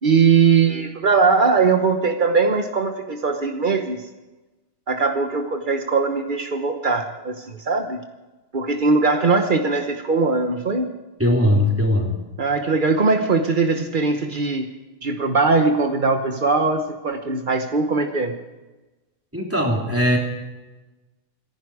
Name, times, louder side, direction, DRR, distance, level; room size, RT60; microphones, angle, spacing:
voice 1, 0.0-4.0 4.9-8.0 8.5-10.9 12.4-14.7 15.0-18.4, right 4 dB, 60° right, 6 dB, 0.5 m, -20 dB
voice 2, 11.2-12.2 19.3-20.2, left 1 dB, 5° right, -1 dB, 2.9 m, -19 dB
26.0 x 11.0 x 4.8 m, 1.1 s
omnidirectional pair, 2.3 m